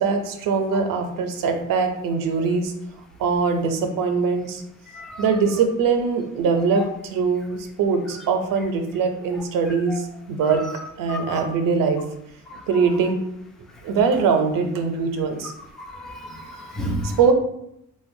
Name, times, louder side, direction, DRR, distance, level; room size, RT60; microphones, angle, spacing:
voice 1, 0.0-2.7 3.2-4.6 5.2-10.6 11.0-12.0 12.7-13.2 13.8-15.5 17.0-17.3, right 5 dB, 75° right, 5 dB, 0.5 m, -22 dB
voice 2, 4.9-5.2 9.9-10.0 11.1-11.5 12.5-12.6 15.8-17.2, equal, ahead, 2 dB, 0.3 m, -32 dB
2.9 x 2.2 x 2.6 m, 0.77 s
cardioid pair, 85°, 33 cm